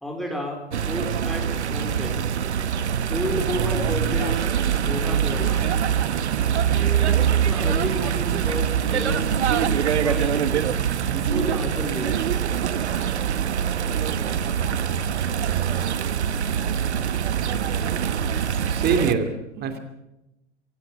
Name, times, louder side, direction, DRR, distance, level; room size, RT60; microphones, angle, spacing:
voice 1, 0.0-2.1 3.1-5.7 6.7-9.4 10.0-10.7 11.0-12.4, left 1 dB, ahead, 0 dB, 4.1 m, -32 dB
sound 1, 0.7-19.1, right 8 dB, 65° right, 1.3 m, -24 dB
voice 2, 18.7-19.8, right 5 dB, 25° right, 8 dB, 2.9 m, -24 dB
24.5 x 17.0 x 8.9 m, 0.93 s
figure-of-eight pair, 95°, 35 cm